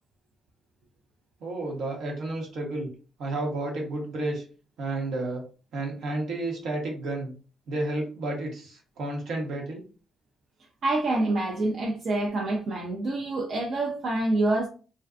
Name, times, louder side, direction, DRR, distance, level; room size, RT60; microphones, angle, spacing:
voice 1, 1.4-2.9 3.2-4.4 4.8-5.4 5.7-7.3 7.7-9.8, right 2 dB, 75° right, 1.0 m, -31 dB
voice 2, 10.8-14.7, right 2 dB, 55° right, 0.5 m, -26 dB
2.5 x 2.1 x 2.4 m
cardioid pair, 90°, 0 cm